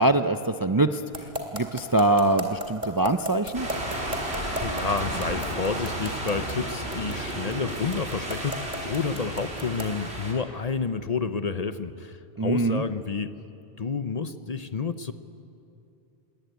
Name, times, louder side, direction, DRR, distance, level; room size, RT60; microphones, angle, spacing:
voice 1, 0.0-3.7 12.4-12.8, right 2 dB, 30° right, 9 dB, 0.4 m, -23 dB
sound 1, 1.1-10.0, equal, 45° right, 2.6 m, -34 dB
sound 2, 3.5-10.3, right 1 dB, 85° right, 4.0 m, -32 dB
voice 2, 4.2-13.3 13.8-15.1, left 5 dB, 45° left, 12 dB, 0.7 m, -30 dB
20.0 x 19.5 x 9.3 m, 2.7 s
omnidirectional pair, 1.1 m